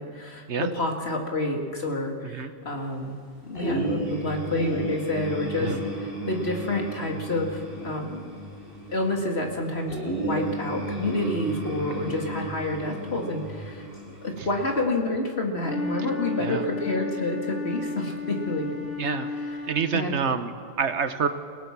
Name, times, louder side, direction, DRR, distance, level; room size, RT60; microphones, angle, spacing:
voice 1, 0.0-3.2 3.4-8.2 8.9-13.9 14.2-18.9 19.5-20.2, left 2 dB, 65° left, 2 dB, 2.7 m, -29 dB
sound 1, 3.5-14.8, right 1 dB, 30° left, 6.7 m, -33 dB
Wind instrument woodwind instrument, 15.6-20.1, left 3 dB, 85° left, 5.7 m, -33 dB
voice 2, 19.0-19.3 19.7-21.3, right 6 dB, 80° right, 9 dB, 1.4 m, -27 dB
28.5 x 17.5 x 6.1 m, 2.2 s
omnidirectional pair, 1.2 m